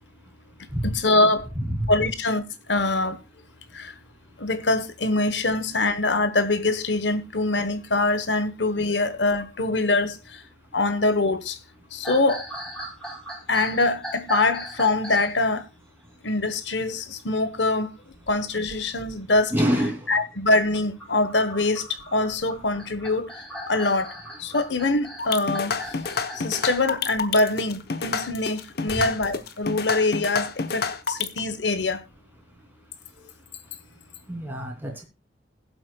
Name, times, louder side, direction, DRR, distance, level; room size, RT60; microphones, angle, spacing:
voice 1, 0.8-1.5 1.9-3.2 3.7-3.9 4.4-10.2 10.7-11.6 11.9-12.4 13.5-15.6 16.2-17.9 18.3-19.5 20.1-23.3 23.7-24.1 24.4-25.8 26.4-32.0, left 2 dB, 85° left, 1.1 m, -24 dB
sound 1, 12.0-15.4 16.8-17.4 17.8-17.9 18.6-18.9 20.6-26.8, equal, 5° left, 3.9 m, -38 dB
voice 2, 19.5-20.0 34.3-35.0, equal, 10° right, 2.8 m, -25 dB
sound 2, 25.2-31.4, left 5 dB, 60° left, 0.9 m, -28 dB
20.5 x 7.8 x 2.3 m
head